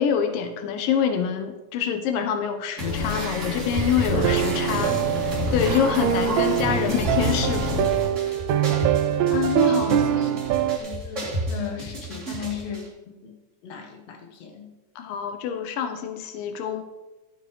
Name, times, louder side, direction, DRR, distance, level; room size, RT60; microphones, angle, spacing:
voice 1, 0.0-5.0 5.5-7.9 9.3-9.9 15.0-16.8, left 8 dB, 85° left, 7 dB, 2.5 m, -26 dB
sound 1, 2.8-12.8, left 1 dB, 25° right, 2.1 m, -29 dB
voice 2, 4.1-4.7 6.7-7.1 9.4-12.9 13.2-13.4 13.6-14.7, left 7 dB, 60° left, 2 dB, 2.3 m, -36 dB
sound 2, 4.1-10.8, right 11 dB, 85° right, 1.7 m, -24 dB
11.5 x 6.6 x 4.8 m, 1.1 s
omnidirectional pair, 3.8 m